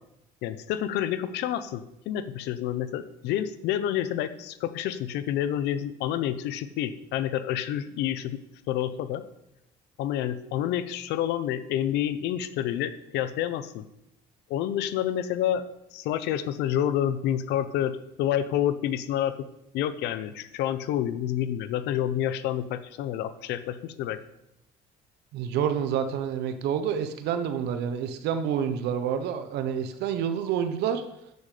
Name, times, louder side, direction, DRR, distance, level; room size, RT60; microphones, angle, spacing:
voice 1, 0.4-8.4 8.7-9.2 10.0-13.8 14.5-15.6 15.9-19.5 19.7-24.2, left 11 dB, 85° left, 13 dB, 0.7 m, -28 dB
voice 2, 25.3-31.0, right 8 dB, 80° right, 9 dB, 0.9 m, -28 dB
9.2 x 8.4 x 5.0 m, 0.84 s
cardioid pair, 110°, 17 cm